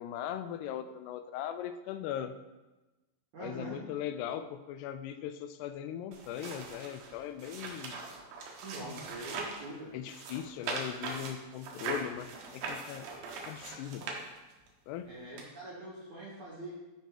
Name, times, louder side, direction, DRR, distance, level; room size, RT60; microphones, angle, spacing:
voice 1, 0.0-2.4 3.4-8.0 9.9-13.1 13.4-14.2 14.9-15.1, left 10 dB, 85° left, 10 dB, 2.4 m, -39 dB
voice 2, 3.3-3.8 8.6-10.0 15.0-16.7, right 1 dB, 55° right, -5 dB, 2.4 m, -43 dB
sound 1, 6.1-9.7 10.0-14.7 15.4-15.5, right 4 dB, 70° right, 3.0 m, -41 dB
11.5 x 5.5 x 3.8 m, 1.1 s
omnidirectional pair, 5.3 m